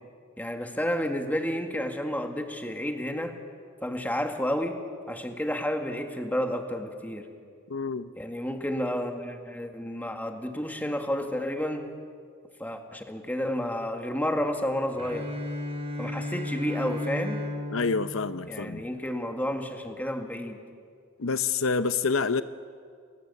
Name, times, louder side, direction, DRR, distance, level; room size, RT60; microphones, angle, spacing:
voice 1, 0.4-3.3 3.8-4.8 5.1-7.3 8.2-11.9 12.6-15.3 16.0-17.4 18.5-20.6, equal, 10° left, 5 dB, 2.0 m, -31 dB
voice 2, 7.7-8.1 17.7-18.8 21.2-22.4, left 4 dB, 70° left, 12 dB, 0.8 m, -27 dB
Bowed string instrument, 14.9-19.0, left 1 dB, 30° right, 6.6 m, -35 dB
30.0 x 21.0 x 8.4 m, 2.1 s
head